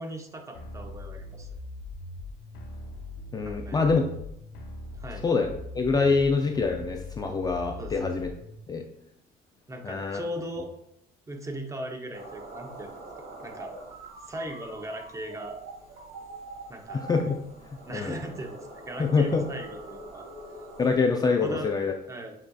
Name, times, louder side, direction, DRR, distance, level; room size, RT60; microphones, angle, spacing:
voice 1, 0.0-1.5 3.4-3.8 5.0-5.2 7.8-8.0 9.7-10.7 11.3-12.9 13.4-13.7 14.2-15.6 16.7-17.1 17.8-20.3 21.4-21.7 22.1-22.3, right 1 dB, 20° right, 3 dB, 0.7 m, -38 dB
sound 1, 0.5-8.5, left 2 dB, 85° left, 0.6 m, -41 dB
voice 2, 3.3-4.0 5.2-8.3 8.7-8.8 9.8-10.2 16.9-17.4 17.9-18.2 19.0-19.4 20.8-21.9, left 4 dB, 25° left, 3 dB, 0.4 m, -25 dB
sound 2, 12.1-21.0, right 2 dB, 60° right, 1.4 m, -44 dB
7.2 x 2.7 x 2.3 m, 0.80 s
cardioid pair, 110°, 17 cm